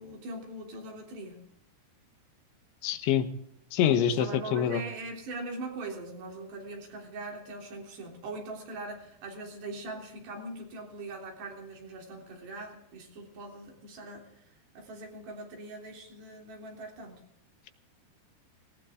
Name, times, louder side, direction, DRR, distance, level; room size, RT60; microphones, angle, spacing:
voice 1, 0.0-1.4 3.9-14.3 14.8-17.2, right 2 dB, 70° right, 0 dB, 5.6 m, -41 dB
voice 2, 2.8-3.3 3.7-4.8, left 9 dB, 85° left, 9 dB, 3.5 m, -25 dB
18.5 x 18.5 x 3.8 m, 0.75 s
omnidirectional pair, 5.1 m